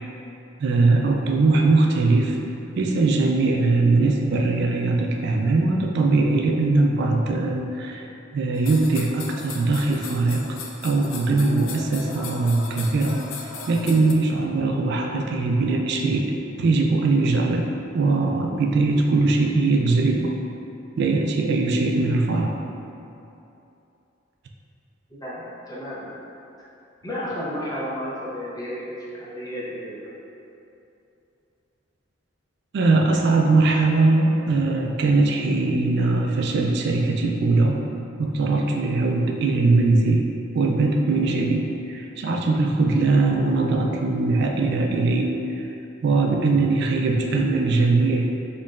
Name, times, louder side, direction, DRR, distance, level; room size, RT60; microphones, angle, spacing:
voice 1, 0.6-2.4 2.7-8.1 8.3-10.5 10.8-20.4 21.0-22.6 32.7-37.8 38.2-40.3 40.5-45.7 46.0-48.3, right 3 dB, 60° right, 2 dB, 0.3 m, -21 dB
sound 1, 8.6-14.1, left 4 dB, 90° left, 0.4 m, -37 dB
voice 2, 25.2-26.1 27.0-30.1, equal, 20° left, -7 dB, 0.7 m, -32 dB
4.3 x 3.0 x 2.4 m, 2.8 s
head